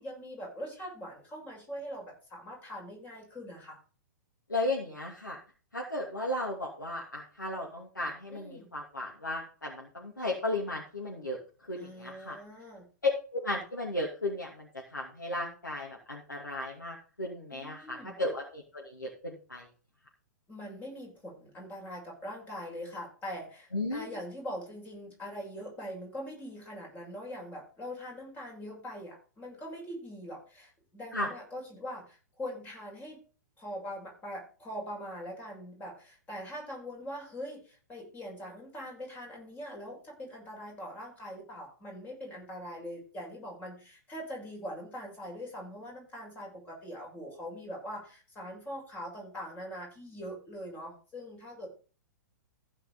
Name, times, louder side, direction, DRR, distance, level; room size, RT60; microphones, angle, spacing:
voice 1, 0.0-3.8 8.3-8.7 11.7-12.8 17.5-18.2 20.5-33.2 33.6-51.7, equal, 15° left, -1 dB, 7.3 m, -42 dB
voice 2, 4.5-5.4 5.7-11.4 11.7-12.4 13.3-19.7 23.7-24.1 31.1-31.3, left 1 dB, 85° left, -3 dB, 2.7 m, -35 dB
15.5 x 5.3 x 5.3 m, 0.37 s
figure-of-eight pair, 110°, 10 cm